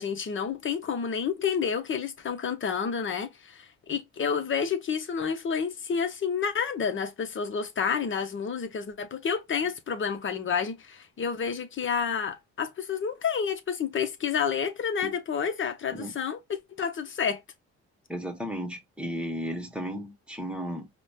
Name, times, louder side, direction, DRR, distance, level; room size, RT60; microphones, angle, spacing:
voice 1, 0.0-17.4, left 6 dB, 40° left, 0.9 m, -30 dB
voice 2, 18.1-20.9, equal, 5° right, 1.1 m, -34 dB
5.0 x 2.2 x 2.2 m
cardioid pair, 90°, 30 cm